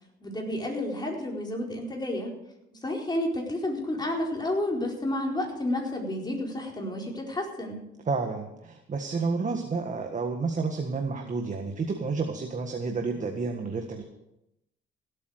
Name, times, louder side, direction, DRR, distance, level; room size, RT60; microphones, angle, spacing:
voice 1, 0.2-2.3 2.7-7.8, left 1 dB, 20° left, -1 dB, 4.5 m, -31 dB
voice 2, 8.0-14.0, right 4 dB, 40° right, 4 dB, 1.6 m, -30 dB
16.5 x 8.5 x 6.6 m, 0.86 s
cardioid pair, 90°, 20 cm